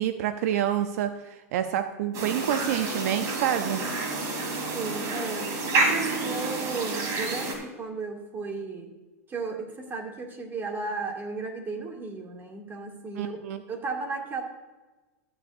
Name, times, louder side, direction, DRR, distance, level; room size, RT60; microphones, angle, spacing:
voice 1, 0.0-3.8 13.2-13.6, right 10 dB, 70° right, 9 dB, 0.7 m, -28 dB
sound 1, 2.1-7.5, right 3 dB, 45° right, 3.1 m, -29 dB
voice 2, 4.7-8.9 9.3-13.4 13.7-14.4, right 4 dB, 25° right, 2 dB, 2.3 m, -35 dB
13.5 x 9.7 x 2.6 m, 1.2 s
hypercardioid pair, 115°, 9 cm